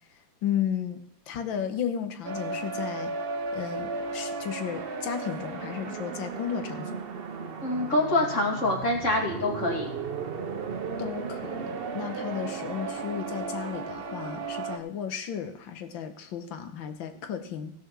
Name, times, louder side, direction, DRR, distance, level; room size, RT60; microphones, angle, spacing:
voice 1, 0.4-1.0 1.3-3.1 3.5-6.9 11.0-17.7, left 8 dB, 75° left, 8 dB, 1.8 m, -34 dB
sound 1, 2.2-14.8, right 4 dB, 65° right, 0.5 m, -35 dB
voice 2, 7.6-9.9, left 2 dB, 40° left, 0 dB, 2.6 m, -25 dB
16.0 x 6.2 x 6.0 m, 0.75 s
omnidirectional pair, 2.1 m